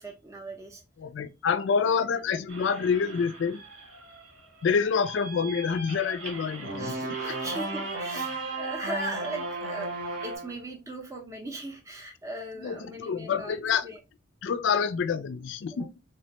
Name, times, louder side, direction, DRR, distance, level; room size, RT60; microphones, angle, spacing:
voice 1, 0.0-0.8 2.0-2.1 6.8-9.9 10.2-13.6 13.8-14.0, right 1 dB, 15° right, 0.5 m, -38 dB
voice 2, 1.0-3.6 4.6-7.4 12.6-13.9 14.4-15.9, left 6 dB, 70° left, 0.3 m, -27 dB
sound 1, 2.5-10.4, right 3 dB, 85° right, 1.2 m, -43 dB
sound 2, 6.6-10.6, right 2 dB, 55° right, 0.8 m, -34 dB
3.2 x 2.2 x 2.8 m
head